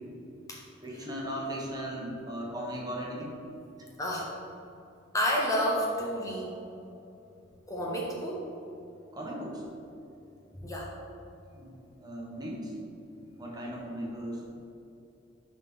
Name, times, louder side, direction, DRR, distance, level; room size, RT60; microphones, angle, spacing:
voice 1, 0.8-3.4 3.8-3.9 9.1-9.6 11.5-12.7 13.4-14.6, equal, 20° right, -2 dB, 1.2 m, -37 dB
voice 2, 4.0-4.3 5.1-6.6 7.7-8.5 10.6-10.9, equal, 20° left, -3 dB, 0.8 m, -30 dB
11.0 x 4.1 x 3.7 m, 2.8 s
head